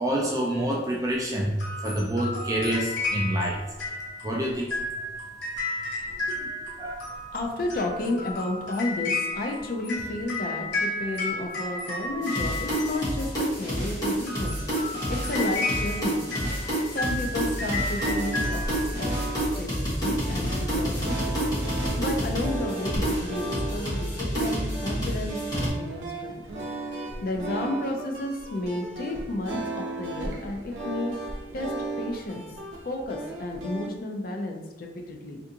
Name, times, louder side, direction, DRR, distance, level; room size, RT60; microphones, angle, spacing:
voice 1, 0.0-1.5 1.8-3.6 4.2-4.7 6.8-7.0, right 1 dB, 20° right, -2 dB, 0.3 m, -27 dB
sound 1, 1.6-13.5 14.1-19.4, left 2 dB, 70° left, 1.3 m, -33 dB
voice 2, 6.1-6.5 7.3-16.2 16.9-19.1 19.6-21.4 22.0-26.4 27.0-31.1 31.5-31.7 32.0-32.4 32.8-35.4, left 2 dB, 50° left, 2 dB, 0.5 m, -32 dB
sound 2, 12.2-25.7, equal, 20° left, 1.1 m, -29 dB
sound 3, 17.9-33.9, right 2 dB, 85° right, 0.7 m, -36 dB
3.4 x 2.5 x 2.7 m, 1.1 s
head